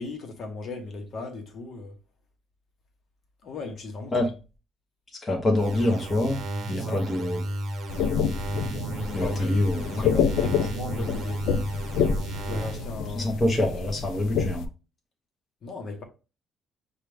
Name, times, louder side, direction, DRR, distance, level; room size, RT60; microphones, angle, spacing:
voice 1, 0.0-1.9 3.4-4.1 6.7-7.0 9.1-9.5 9.9-11.5 12.3-13.3 15.6-16.0, left 3 dB, 50° left, 1.0 m, -37 dB
voice 2, 5.2-6.4 6.7-7.4 9.1-10.0 13.2-14.7, left 1 dB, 20° left, 0.9 m, -25 dB
sound 1, 5.5-12.9, right 2 dB, 50° right, 0.7 m, -33 dB
sound 2, 7.9-14.7, left 6 dB, 80° left, 0.4 m, -28 dB
6.5 x 2.4 x 3.3 m
cardioid pair, 145°, 0 cm